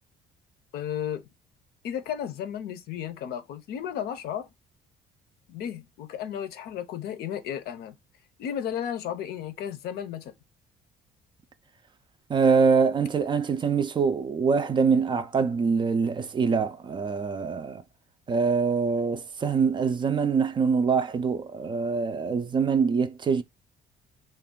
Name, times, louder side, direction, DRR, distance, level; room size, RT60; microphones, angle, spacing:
voice 1, 0.7-1.2 1.8-4.5 5.5-7.9 8.4-10.3, left 9 dB, 70° left, 0.6 m, -33 dB
voice 2, 12.3-17.8 18.3-23.4, right 5 dB, 30° right, 0.3 m, -24 dB
2.5 x 2.2 x 3.6 m
cardioid pair, 110°, 17 cm